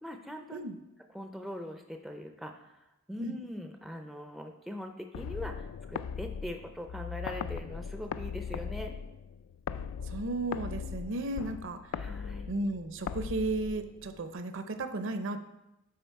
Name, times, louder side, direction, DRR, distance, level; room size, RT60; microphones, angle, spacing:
voice 1, 0.0-0.6 1.1-9.0 10.7-11.0 11.9-12.5, equal, ahead, 4 dB, 0.4 m, -42 dB
sound 1, 5.1-14.2, left 6 dB, 80° left, 0.3 m, -39 dB
voice 2, 10.0-11.8 12.5-15.4, right 2 dB, 60° right, 9 dB, 0.6 m, -34 dB
9.4 x 3.9 x 4.6 m, 0.91 s
head